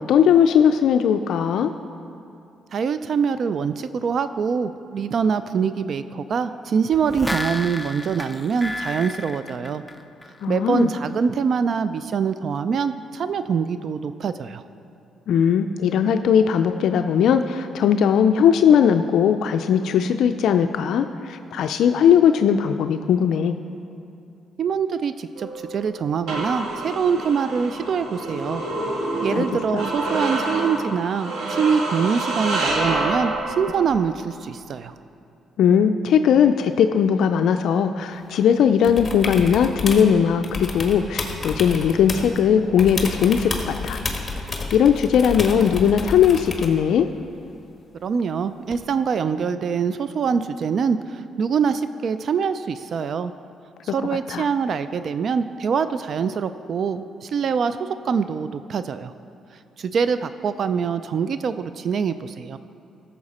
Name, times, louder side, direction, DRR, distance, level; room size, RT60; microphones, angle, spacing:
voice 1, 0.0-1.7 10.4-10.9 15.3-23.6 29.3-29.5 29.7-29.8 35.6-44.0 44.7-47.1 54.3-54.4, left 8 dB, 75° left, 8 dB, 0.3 m, -19 dB
voice 2, 2.7-9.8 10.5-14.6 24.6-28.6 29.2-34.9 48.0-53.3 53.8-59.1 59.8-62.6, right 6 dB, 55° right, 12 dB, 0.3 m, -24 dB
sound 1, 6.9-10.4 10.8-10.9, left 1 dB, 5° left, 0.6 m, -32 dB
sound 2, 25.4-33.9, right 2 dB, 75° right, 1.6 m, -27 dB
sound 3, 38.8-40.1 40.4-42.4 42.8-46.8 48.7-48.8, left 3 dB, 30° left, 1.3 m, -30 dB
13.5 x 7.0 x 4.2 m, 2.7 s
cardioid pair, 90°, 0 cm